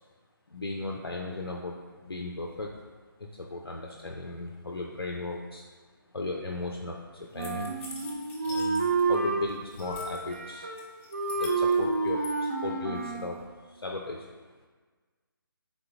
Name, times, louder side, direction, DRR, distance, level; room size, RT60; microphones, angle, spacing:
voice 1, 0.5-1.8 2.0-2.8 3.2-5.6 6.1-7.7 8.4-10.7 11.4-13.4 13.7-14.3, left 2 dB, 85° left, 0 dB, 0.4 m, -36 dB
Wind instrument woodwind instrument, 7.3-9.4 9.8-10.9 11.1-13.3, right 4 dB, 35° right, 0.4 m, -29 dB
sound 1, 7.4-9.2 9.4-10.4 10.8-12.3, left 3 dB, 35° left, 0.7 m, -45 dB
3.7 x 3.7 x 2.3 m, 1.4 s
figure-of-eight pair, 145°, 12 cm